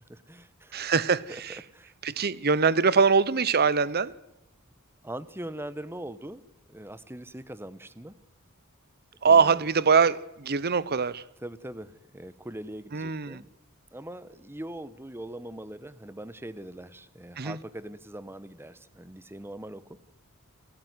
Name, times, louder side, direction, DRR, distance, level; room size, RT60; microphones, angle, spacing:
voice 1, 0.1-0.9 1.3-1.4 1.7-1.9 5.0-6.4 6.7-8.2 9.2-9.6 11.4-13.5 13.9-20.0, right 1 dB, 10° right, 1.0 m, -41 dB
voice 2, 0.7-1.6 2.0-4.1 9.2-11.2 12.9-13.4 17.4-17.6, right 5 dB, 50° right, 0.9 m, -23 dB
29.0 x 14.0 x 9.6 m
head